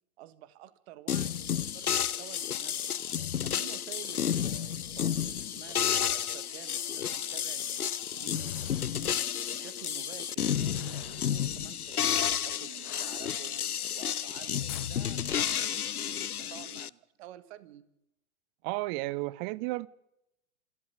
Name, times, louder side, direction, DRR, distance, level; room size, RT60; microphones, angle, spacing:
voice 1, 0.2-3.0 3.4-9.2 9.5-13.7 13.9-17.9, right 13 dB, 45° right, 1.7 m, -50 dB
sound 1, 1.1-16.9, left 9 dB, 85° left, 0.7 m, -31 dB
sound 2, 8.2-9.0 10.6-11.3 12.8-13.7 14.7-15.0, left 21 dB, 35° left, 0.7 m, -47 dB
voice 2, 18.6-19.9, right 21 dB, 30° right, 0.7 m, -33 dB
28.0 x 12.5 x 8.2 m
figure-of-eight pair, 105°, 43 cm